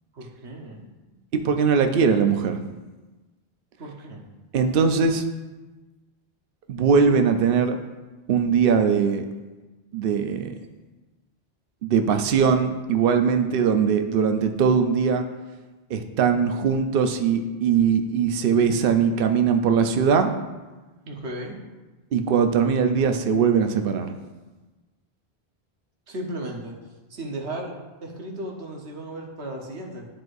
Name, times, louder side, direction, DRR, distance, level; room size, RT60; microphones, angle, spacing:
voice 1, 0.1-0.9 3.8-4.2 21.1-21.6 26.1-26.7 27.1-27.8 28.0-30.1, right 1 dB, 85° right, 0 dB, 1.4 m, -35 dB
voice 2, 1.3-2.6 4.5-5.2 6.7-7.8 8.3-9.2 9.9-10.5 11.8-15.2 15.9-20.3 22.1-24.1, right 6 dB, 65° right, 6 dB, 0.8 m, -21 dB
12.0 x 4.7 x 2.6 m, 1.2 s
omnidirectional pair, 1.1 m